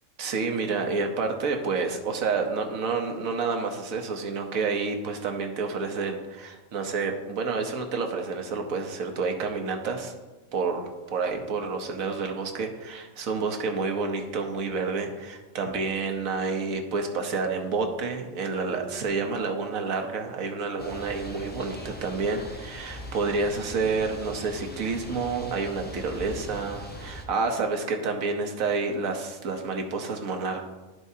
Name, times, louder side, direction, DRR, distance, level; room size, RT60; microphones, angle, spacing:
voice 1, 0.2-10.1 10.5-30.7, right 4 dB, 80° right, 4 dB, 1.3 m, -29 dB
sound 1, 20.8-27.2, equal, 15° left, 0.4 m, -41 dB
13.0 x 4.5 x 2.7 m, 1.2 s
omnidirectional pair, 1.4 m